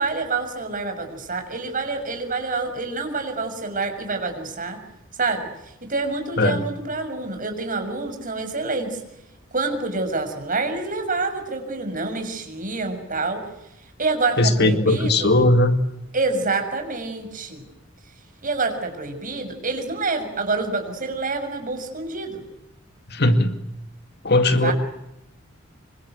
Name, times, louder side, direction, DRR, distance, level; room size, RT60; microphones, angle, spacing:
voice 1, 0.0-4.8 5.2-5.5 5.8-9.0 9.5-13.4 14.0-15.4 16.1-17.6 18.4-22.4 24.5-24.7, right 3 dB, 45° right, 6 dB, 6.5 m, -27 dB
voice 2, 14.4-15.8 23.1-23.6 24.2-24.7, left 1 dB, 55° left, 8 dB, 2.3 m, -18 dB
26.5 x 25.0 x 8.1 m, 0.89 s
head